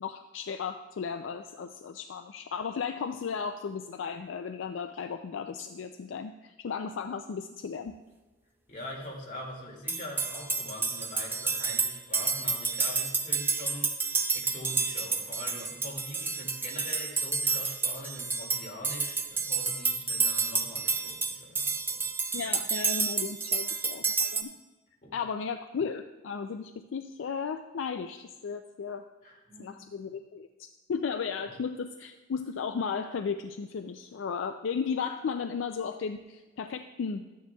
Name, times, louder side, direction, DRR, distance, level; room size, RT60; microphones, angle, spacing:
voice 1, 0.0-7.9 22.3-24.5 25.1-29.0 29.6-37.3, left 6 dB, 70° left, 7 dB, 0.4 m, -35 dB
voice 2, 8.7-22.4 25.0-25.2 29.2-29.8, left 1 dB, 40° left, -3 dB, 2.3 m, -43 dB
sound 1, 9.9-24.4, right 4 dB, 10° right, 0.5 m, -30 dB
13.5 x 9.3 x 2.3 m, 1.2 s
head